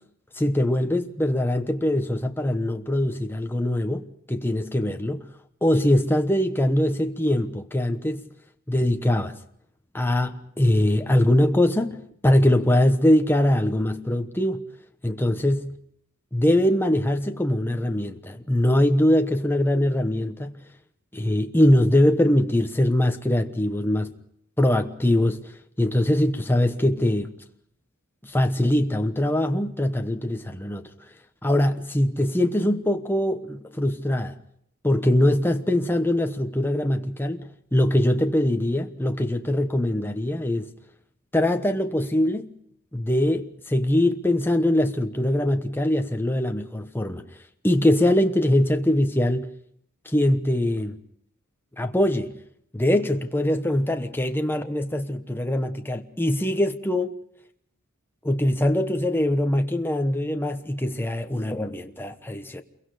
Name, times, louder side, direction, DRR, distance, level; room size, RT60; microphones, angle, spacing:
voice 1, 0.4-5.3 5.6-8.2 8.7-9.4 9.9-14.6 15.0-15.7 16.3-20.5 21.1-24.1 24.6-25.4 25.8-27.3 28.2-30.9 31.4-34.4 34.8-40.7 41.3-42.5 42.9-47.3 47.6-49.5 50.0-51.0 51.8-52.4 52.7-57.1 58.2-62.6, left 1 dB, 10° left, 1.1 m, -22 dB
28.5 x 23.0 x 5.0 m
head